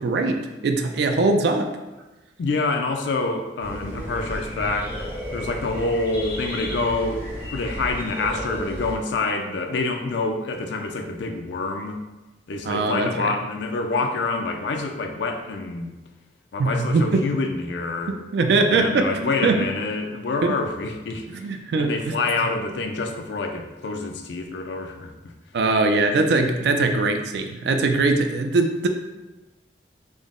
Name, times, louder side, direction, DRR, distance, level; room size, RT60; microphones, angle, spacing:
voice 1, 0.0-1.7 12.6-13.3 16.6-17.2 18.3-19.6 20.4-20.6 21.3-22.1 25.5-28.9, right 3 dB, 70° right, 5 dB, 0.3 m, -21 dB
voice 2, 2.4-7.2 7.5-12.0 12.5-15.9 16.5-18.2 18.7-21.5 21.8-25.1, left 3 dB, 75° left, 5 dB, 0.4 m, -27 dB
sound 1, 3.6-8.9, equal, 10° right, 1.0 m, -33 dB
3.6 x 2.0 x 3.6 m, 1.1 s
head